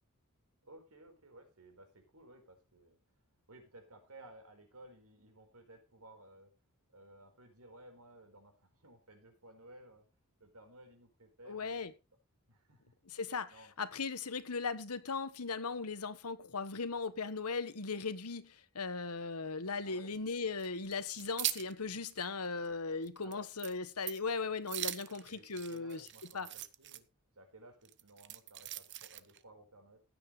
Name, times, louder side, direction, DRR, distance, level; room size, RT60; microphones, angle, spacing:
voice 1, 0.6-3.0 3.5-6.5 6.9-10.1 10.4-11.8 12.5-13.0 13.5-13.7 19.8-20.1 23.2-23.5 25.1-27.1 27.4-30.0, right 1 dB, 75° right, 4.5 m, -57 dB
voice 2, 11.5-11.9 13.1-26.1 26.3-26.5, left 4 dB, 80° left, 1.3 m, -38 dB
sound 1, 20.6-21.7 22.1-22.2 22.7-22.8 23.0-23.3 23.6-23.8 24.0-24.3 24.7-27.0 27.8-29.4, right 13 dB, 55° right, 0.9 m, -40 dB
15.5 x 9.6 x 3.2 m
head